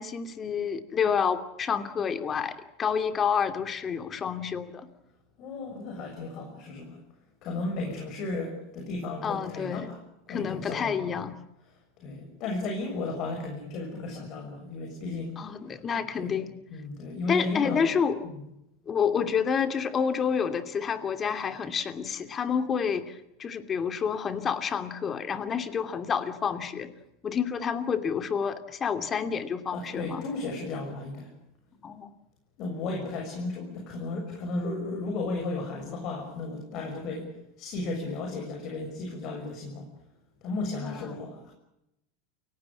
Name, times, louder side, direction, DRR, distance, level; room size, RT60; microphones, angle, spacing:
voice 1, 0.0-4.9 9.2-9.9 10.3-11.4 15.4-16.5 17.3-18.2 18.9-26.9 27.2-30.2 31.8-32.1 40.8-41.1, left 7 dB, 30° left, 9 dB, 2.7 m, -29 dB
voice 2, 5.4-7.0 7.4-10.0 10.3-11.2 12.0-15.3 16.1-16.3 16.7-17.8 18.2-18.4 29.7-31.3 32.6-37.3 37.6-39.9 40.4-41.5, left 3 dB, 50° left, 2 dB, 6.7 m, -34 dB
29.5 x 17.0 x 8.6 m, 0.86 s
hypercardioid pair, 85°, 0 cm